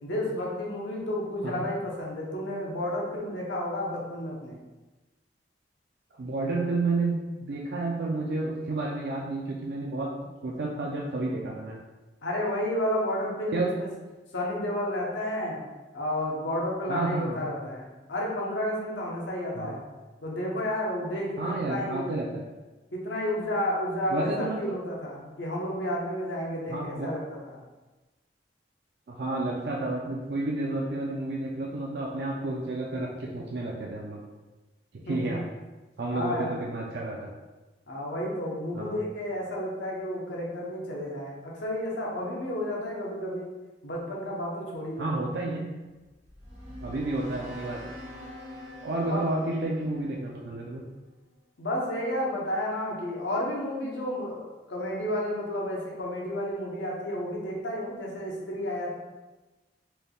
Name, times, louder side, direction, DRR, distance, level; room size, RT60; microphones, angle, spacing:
voice 1, 0.0-4.6 12.2-13.9 14.3-15.6 15.9-19.8 20.2-22.1 22.9-27.6 35.1-35.4 36.1-36.5 37.9-43.5 43.8-45.1 49.1-49.2 51.6-58.9, left 1 dB, 80° left, -3 dB, 0.9 m, -31 dB
voice 2, 6.2-10.1 10.4-11.8 13.5-13.7 16.9-17.5 19.5-19.8 21.4-22.4 24.1-24.8 26.7-27.1 29.1-34.2 34.9-35.4 36.0-37.3 38.7-39.0 45.0-45.7 46.8-47.9 48.8-50.8, right 2 dB, 60° right, -3 dB, 0.4 m, -31 dB
sound 1, 45.9-51.2, left 1 dB, 40° right, 0.9 m, -45 dB
4.3 x 3.4 x 2.3 m, 1.2 s
head